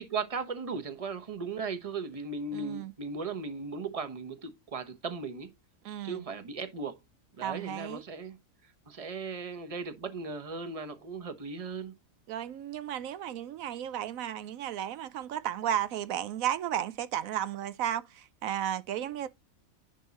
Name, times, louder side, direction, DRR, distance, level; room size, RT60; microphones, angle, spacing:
voice 1, 0.0-5.5 6.0-7.0 7.4-8.4 8.9-11.9, right 4 dB, 25° right, 1.1 m, -37 dB
voice 2, 2.5-2.9 5.8-6.2 7.4-8.0 12.3-19.3, right 10 dB, 80° right, 1.0 m, -34 dB
10.5 x 3.6 x 4.1 m
omnidirectional pair, 1.4 m